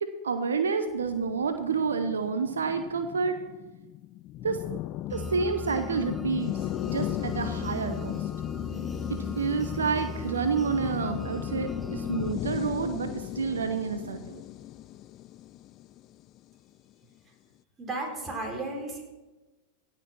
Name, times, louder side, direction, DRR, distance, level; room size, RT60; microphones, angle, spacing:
voice 1, 0.0-3.4 4.4-4.6 5.1-6.6 6.8-8.2 9.1-14.4, right 5 dB, 80° right, 8 dB, 0.8 m, -29 dB
sound 1, 1.1-16.5, left 14 dB, 40° left, 0.4 m, -37 dB
sound 2, 5.1-12.4, left 2 dB, 5° left, 0.6 m, -38 dB
voice 2, 17.8-19.0, right 2 dB, 20° right, 0 dB, 4.1 m, -34 dB
17.0 x 6.1 x 6.0 m, 1.2 s
hypercardioid pair, 95°, 0 cm